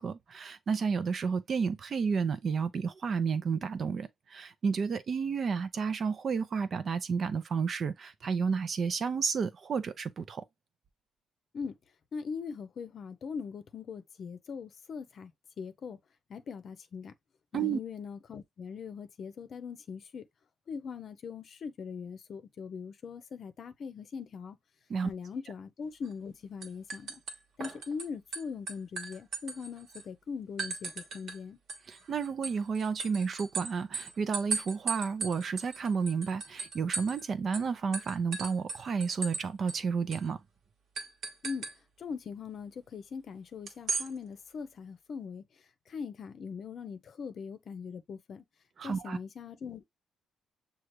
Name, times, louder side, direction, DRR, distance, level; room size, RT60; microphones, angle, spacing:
voice 1, 0.0-10.4 17.5-17.8 24.9-25.1 31.9-40.4 48.8-49.2, right 5 dB, 50° right, 0.6 m, -31 dB
voice 2, 12.1-15.3 15.6-16.0 16.3-17.1 17.5-20.3 20.7-24.6 25.0-27.2 27.6-31.6 41.4-41.7 42.0-45.4 45.9-48.4 48.8-49.8, left 6 dB, 55° left, 0.7 m, -41 dB
sound 1, 26.0-26.3 26.6-28.0 28.3-30.0 30.6-31.4 31.7-37.2 37.5-37.7 37.9-39.4 39.7-39.8 40.1-40.3 41.0-41.7 43.7-44.1, right 4 dB, 65° right, 1.2 m, -37 dB
6.4 x 2.4 x 3.0 m
cardioid pair, 90°, 0 cm